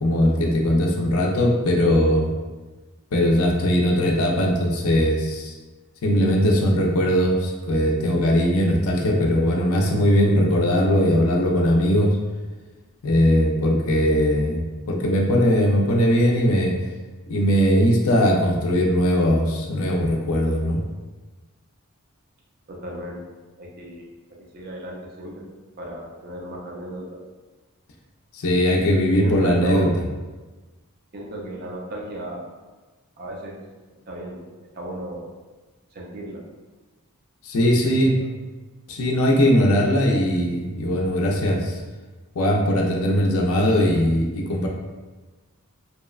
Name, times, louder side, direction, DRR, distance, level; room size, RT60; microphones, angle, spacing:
voice 1, 0.0-2.3 3.1-5.5 6.0-12.2 13.0-16.7 17.3-20.8 28.3-29.9 37.4-38.2 38.9-41.8 42.4-44.7, equal, 70° left, -1 dB, 0.4 m, -20 dB
voice 2, 22.7-23.2 23.6-25.5 25.8-27.2 29.2-29.9 31.1-32.5 33.2-33.6 34.1-35.3 35.9-36.4 37.6-38.1, equal, 45° right, -2 dB, 0.4 m, -34 dB
2.8 x 2.1 x 2.3 m, 1.2 s
head